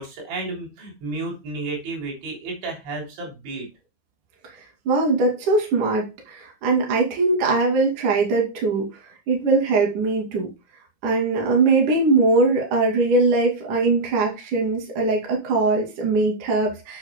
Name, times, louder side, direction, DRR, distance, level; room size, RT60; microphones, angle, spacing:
voice 1, 0.0-3.7, right 3 dB, 85° right, 0 dB, 5.8 m, -32 dB
voice 2, 4.9-8.9 9.3-10.5 11.0-17.0, right 3 dB, 50° right, 0 dB, 3.7 m, -21 dB
11.5 x 7.6 x 2.2 m, 0.26 s
omnidirectional pair, 5.2 m